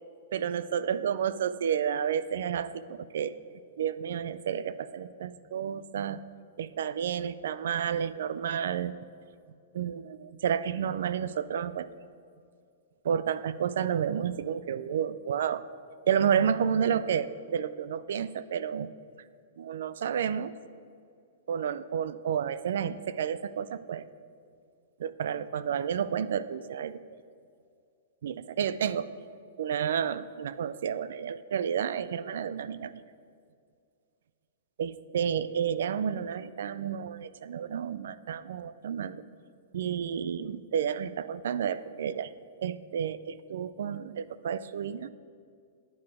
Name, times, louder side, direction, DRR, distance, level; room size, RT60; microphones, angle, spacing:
voice 1, 0.3-3.3 3.8-6.2 6.6-8.9 9.7-11.9 13.0-15.6 16.1-18.9 19.6-20.5 21.5-24.0 25.0-27.0 28.2-29.1 29.6-33.0 34.8-39.2 39.7-42.3 42.6-45.1, right 8 dB, 65° right, 16 dB, 0.3 m, -31 dB
9.3 x 4.8 x 4.8 m, 2.3 s
hypercardioid pair, 170°, 0 cm